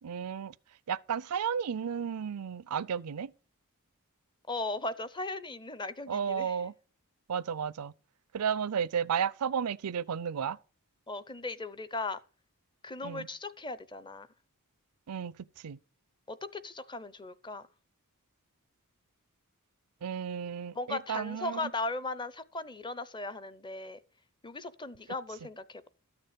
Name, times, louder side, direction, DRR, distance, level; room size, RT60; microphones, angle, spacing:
voice 1, 0.0-0.5 0.9-3.3 6.1-6.7 7.3-7.9 8.3-10.6 13.0-13.3 15.1-15.8 20.0-21.7, right 7 dB, 80° right, 0.5 m, -33 dB
voice 2, 4.5-6.6 11.1-12.2 12.8-14.3 16.3-17.7 20.7-24.0 24.4-25.9, left 2 dB, 20° left, 0.6 m, -37 dB
12.5 x 6.7 x 5.1 m
head